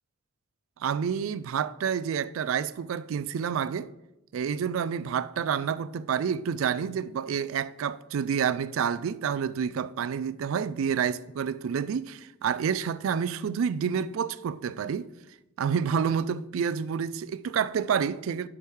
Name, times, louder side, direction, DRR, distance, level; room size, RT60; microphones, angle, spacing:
voice 1, 0.8-3.9 4.3-15.1 15.6-18.5, right 7 dB, 75° right, 0.3 m, -29 dB
11.0 x 5.0 x 3.2 m
head